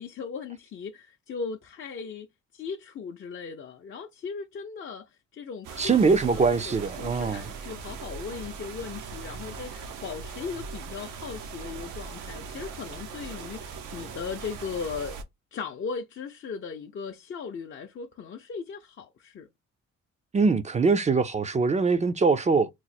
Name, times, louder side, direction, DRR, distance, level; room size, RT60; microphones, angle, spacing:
voice 1, 0.0-2.3 2.5-15.2 15.5-19.5, left 5 dB, 40° left, 0.5 m, -38 dB
sound 1, 5.6-15.2, right 5 dB, 85° right, 0.7 m, -40 dB
voice 2, 5.8-7.4 20.3-22.7, right 4 dB, 25° right, 0.4 m, -23 dB
3.0 x 2.0 x 4.1 m
cardioid pair, 90°, 30 cm